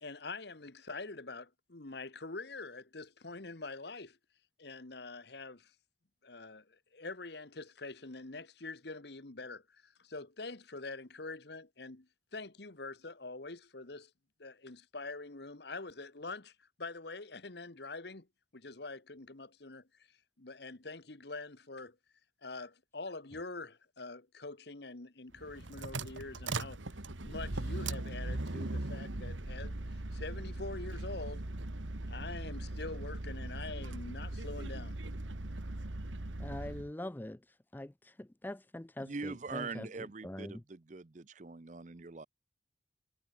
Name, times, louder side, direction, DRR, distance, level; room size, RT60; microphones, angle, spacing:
voice 1, 0.0-4.2 4.6-5.7 6.2-14.1 14.4-18.3 18.5-19.9 20.4-22.0 22.4-26.8 27.2-31.5 32.1-35.0, left 3 dB, 60° left, 1.4 m, -45 dB
sound 1, 25.4-36.9, right 2 dB, 85° right, 1.8 m, -39 dB
voice 2, 36.4-37.4 37.7-39.9 40.2-40.5, left 1 dB, 10° left, 0.4 m, -43 dB
voice 3, 39.0-42.3, right 3 dB, 40° right, 0.6 m, -43 dB
head